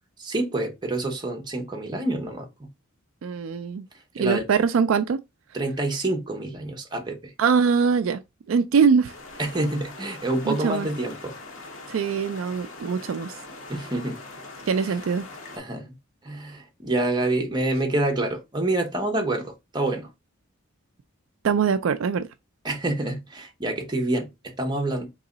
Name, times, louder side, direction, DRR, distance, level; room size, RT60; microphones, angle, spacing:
voice 1, 0.2-2.7 4.2-4.5 5.5-7.3 9.4-11.3 13.7-14.2 14.8-15.0 15.5-15.9 16.2-20.1 22.6-25.1, right 2 dB, 20° right, 1.0 m, -27 dB
voice 2, 3.2-3.8 4.2-5.2 7.4-8.2 8.5-9.1 10.5-10.9 11.9-13.4 14.7-15.2 21.4-22.3, right 6 dB, 70° right, 0.3 m, -22 dB
sound 1, 9.0-15.6, left 3 dB, 75° left, 1.2 m, -42 dB
3.8 x 3.0 x 3.8 m
head